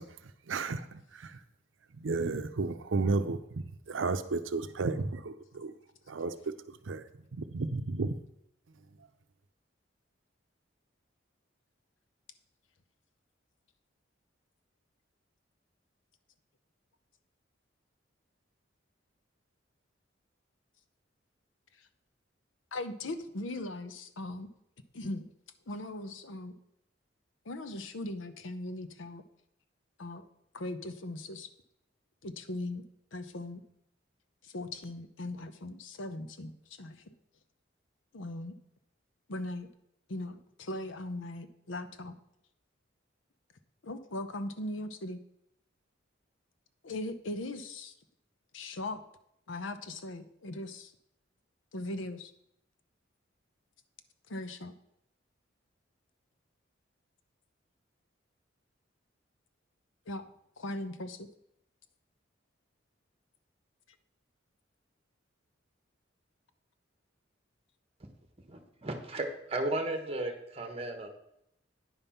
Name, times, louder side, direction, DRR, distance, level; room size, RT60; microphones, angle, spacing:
voice 1, 0.0-1.4 2.0-5.7 6.1-6.3 6.7-7.0 7.3-8.2, right 3 dB, 80° right, 0.6 m, -33 dB
voice 2, 22.7-24.5 24.9-25.2 25.7-26.6 27.4-29.2 30.0-30.2 30.5-31.5 32.2-32.8 33.1-33.6 34.4-37.1 38.1-38.5 39.3-39.7 40.1-42.1 43.8-45.2 46.8-47.9 48.5-49.0 49.5-50.9 51.7-52.3 54.3-54.7 60.1-60.2 60.6-61.3, left 2 dB, 85° left, 0.8 m, -39 dB
voice 3, 68.5-71.1, right 2 dB, 30° right, 1.2 m, -35 dB
9.7 x 5.4 x 5.7 m
head